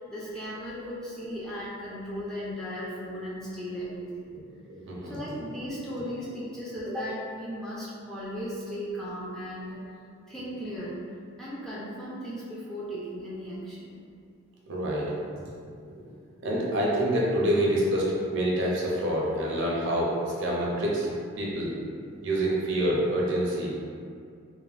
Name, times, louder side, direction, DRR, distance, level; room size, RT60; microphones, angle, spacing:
voice 1, 0.1-4.4 5.0-9.8 10.3-11.1 11.4-14.0, equal, 5° left, -9 dB, 0.3 m, -36 dB
voice 2, 4.7-5.1 14.7-15.1 15.8-16.1 16.4-21.1 21.4-21.7 22.2-23.8, right 1 dB, 60° right, -4 dB, 0.5 m, -27 dB
3.0 x 2.1 x 2.4 m, 2.3 s
head